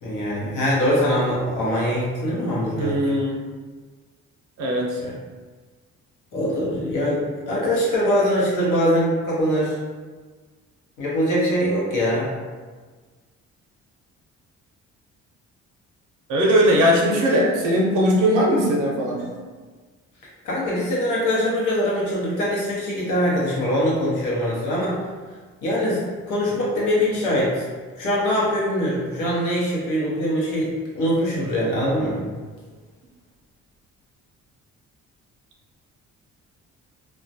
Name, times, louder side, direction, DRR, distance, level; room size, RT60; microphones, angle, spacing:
voice 1, 0.0-2.9 5.0-5.1 6.3-9.8 11.0-12.3 20.4-25.0 25.6-26.0 26.3-27.7 28.0-32.2, equal, 85° left, -5 dB, 0.8 m, -22 dB
voice 2, 2.8-3.4 4.6-5.0 16.3-19.3, equal, 80° right, -2 dB, 0.5 m, -19 dB
2.2 x 2.1 x 2.6 m, 1.4 s
cardioid pair, 90°, 30 cm